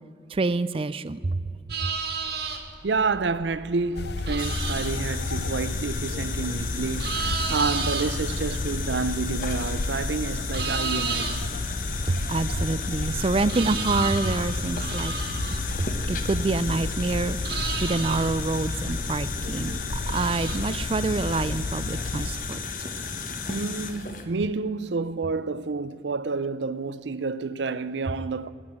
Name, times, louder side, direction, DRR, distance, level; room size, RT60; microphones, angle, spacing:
voice 1, 0.3-1.5 1.8-1.9 12.0-15.1 15.8-22.6, right 3 dB, 30° right, 0.4 m, -27 dB
sound 1, 1.7-20.6, right 5 dB, 65° right, 1.9 m, -35 dB
voice 2, 2.8-11.5 23.5-28.5, right 4 dB, 90° right, 0.6 m, -29 dB
sound 2, 3.9-22.3, left 2 dB, 70° left, 0.6 m, -32 dB
sound 3, 4.4-24.3, left 4 dB, 50° left, 1.3 m, -34 dB
20.0 x 8.1 x 8.6 m
head